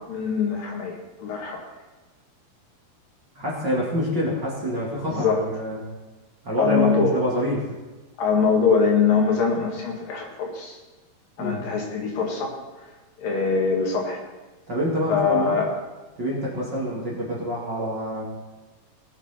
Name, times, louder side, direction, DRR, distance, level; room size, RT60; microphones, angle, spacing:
voice 1, 0.1-1.6 5.1-5.4 6.6-7.2 8.2-10.8 11.4-12.5 13.2-14.2 15.1-15.7, left 5 dB, 65° left, 0 dB, 3.5 m, -23 dB
voice 2, 3.4-5.8 6.4-7.7 11.4-11.6 14.7-15.5 16.2-18.2, equal, 30° right, -5 dB, 2.6 m, -26 dB
19.0 x 8.8 x 4.4 m, 1.2 s
omnidirectional pair, 4.4 m